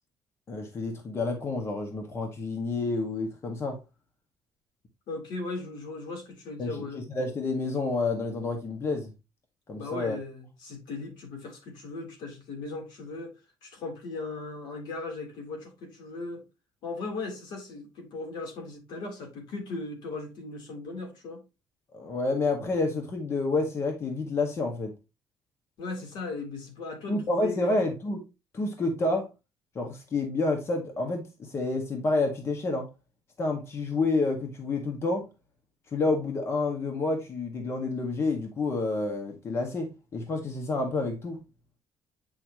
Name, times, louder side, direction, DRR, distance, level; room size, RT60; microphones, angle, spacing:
voice 1, 0.5-3.8 6.6-6.7 7.1-9.1 9.7-10.2 21.9-24.9 27.1-28.2 28.5-29.3 29.7-32.9 33.4-35.3 35.9-41.4, left 3 dB, 35° left, 1.7 m, -29 dB
voice 2, 5.1-7.0 9.8-13.3 13.6-16.4 16.8-21.4 25.8-27.8, left 3 dB, 80° left, 3.7 m, -37 dB
8.7 x 5.7 x 3.1 m
cardioid pair, 155°, 8 cm